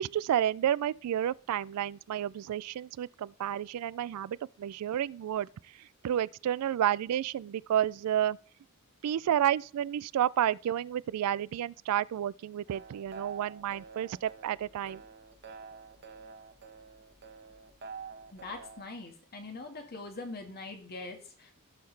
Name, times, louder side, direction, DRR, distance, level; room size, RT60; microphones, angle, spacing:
voice 1, 0.0-5.5 6.0-8.4 9.0-15.0, right 10 dB, 80° right, 0.3 m, -30 dB
sound 1, 12.7-18.8, right 5 dB, 50° right, 1.3 m, -48 dB
voice 2, 18.3-21.5, left 3 dB, 45° left, 1.7 m, -42 dB
15.5 x 5.8 x 3.3 m
head